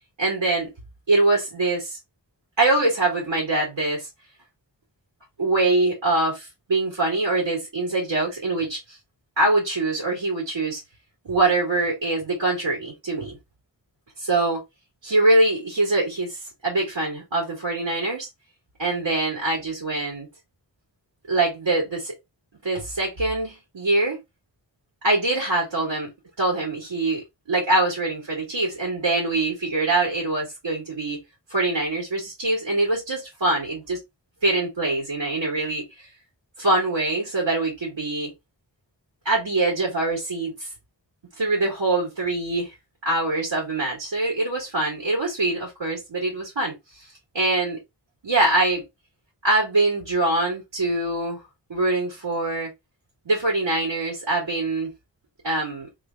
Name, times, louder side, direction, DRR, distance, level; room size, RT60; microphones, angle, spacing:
voice 1, 0.2-0.7 1.1-2.0 2.6-4.1 5.4-9.0 9.4-10.8 11.2-13.4 14.2-14.6 15.0-18.3 18.8-20.3 21.3-22.1 22.6-24.2 25.0-26.1 26.4-31.2 31.5-34.0 34.4-36.1 36.6-38.3 39.2-40.7 41.4-42.7 43.1-47.0 47.3-47.8 48.2-48.8 49.4-51.4 51.7-52.7 53.3-54.9 55.4-55.9, right 2 dB, 85° right, 2.2 m, -23 dB
3.7 x 2.5 x 3.9 m
wide cardioid pair, 65°, 44 cm